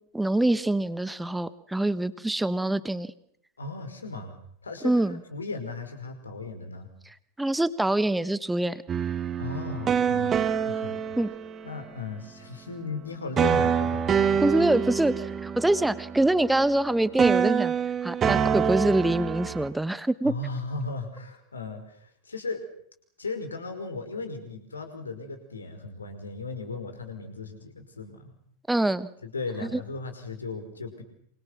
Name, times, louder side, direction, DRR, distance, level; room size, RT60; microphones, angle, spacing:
voice 1, 0.1-3.1 4.8-5.2 7.4-8.8 11.2-11.3 14.4-17.7 18.0-20.3 28.7-29.1 29.6-29.7, right 1 dB, 5° right, 16 dB, 1.4 m, -25 dB
voice 2, 3.6-4.4 4.6-6.9 9.4-11.0 11.6-14.6 20.2-22.6 23.2-28.3 29.2-31.0, left 3 dB, 75° left, 7 dB, 5.4 m, -36 dB
sound 1, 8.9-12.0 13.4-16.9 17.2-19.7, right 7 dB, 25° right, 2.8 m, -26 dB
27.5 x 27.5 x 6.0 m, 0.67 s
figure-of-eight pair, 90°, 0 cm